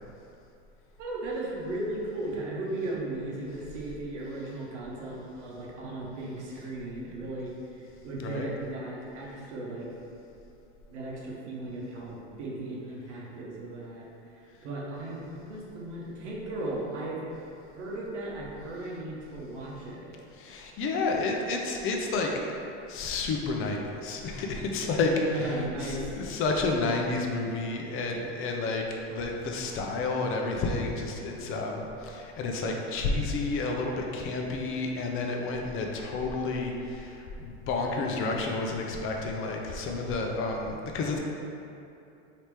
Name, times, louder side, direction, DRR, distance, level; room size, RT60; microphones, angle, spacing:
voice 1, 1.0-9.9 10.9-14.1 14.6-17.2 17.7-20.1 25.3-26.2, right 2 dB, 85° right, -4 dB, 0.9 m, -36 dB
voice 2, 20.4-22.3 22.9-41.2, left 3 dB, 40° left, 1 dB, 0.5 m, -30 dB
3.1 x 2.9 x 3.3 m, 2.7 s
hypercardioid pair, 100°, 35 cm